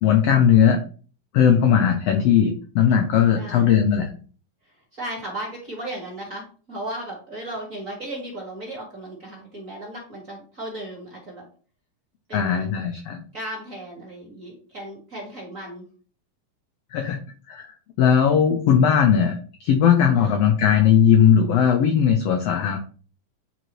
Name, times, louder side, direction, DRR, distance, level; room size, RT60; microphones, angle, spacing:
voice 1, 0.0-0.8 1.3-4.1 12.3-13.2 16.9-17.2 17.5-17.7 18.0-22.8, left 8 dB, 80° left, 5 dB, 1.4 m, -18 dB
voice 2, 3.3-3.8 4.6-11.4 12.3-12.7 13.3-15.9 20.1-20.4, right 1 dB, 30° right, -2 dB, 1.7 m, -36 dB
9.3 x 4.0 x 3.1 m, 0.40 s
omnidirectional pair, 3.7 m